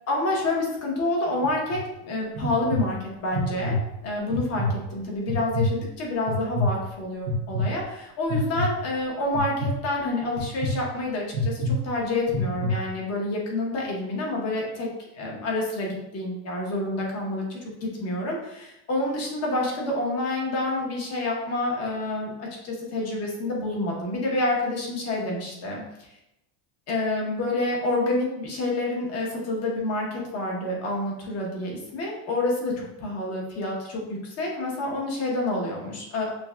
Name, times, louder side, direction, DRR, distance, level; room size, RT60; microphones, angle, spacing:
voice 1, 0.1-3.8 4.0-14.9 15.1-26.1 26.9-36.3, left 2 dB, 35° left, -1 dB, 1.0 m, -28 dB
sound 1, 1.4-1.8 2.4-2.8 3.3-3.8 4.3-4.7 5.3-5.7 6.3-6.7 7.3-7.6 8.3-8.7 9.3-9.7 10.4-10.7 11.3-11.7 12.3-12.7, left 2 dB, 85° right, 1.1 m, -26 dB
5.9 x 2.3 x 2.3 m, 0.87 s
cardioid pair, 160°, 45 cm